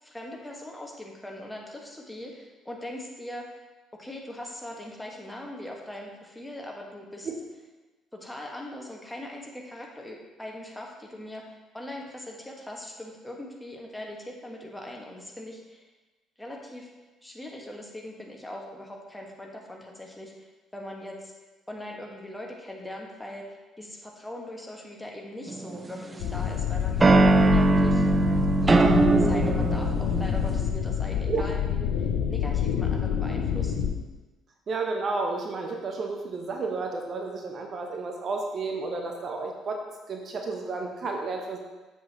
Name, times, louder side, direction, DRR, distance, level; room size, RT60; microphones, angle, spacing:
voice 1, 0.0-3.6 3.9-7.3 8.1-15.9 16.4-16.9 17.2-21.3 21.7-27.0 27.4-28.0 28.6-33.7, left 1 dB, 10° left, -1 dB, 1.7 m, -40 dB
sound 1, 25.5-26.3 27.0-30.6, right 3 dB, 25° right, 0.6 m, -21 dB
sound 2, 26.2-33.9, left 8 dB, 70° left, 0.6 m, -27 dB
voice 2, 34.7-39.8 40.1-41.6, right 3 dB, 45° right, 2 dB, 0.9 m, -31 dB
7.9 x 7.4 x 3.1 m, 1.2 s
figure-of-eight pair, 50°, 0 cm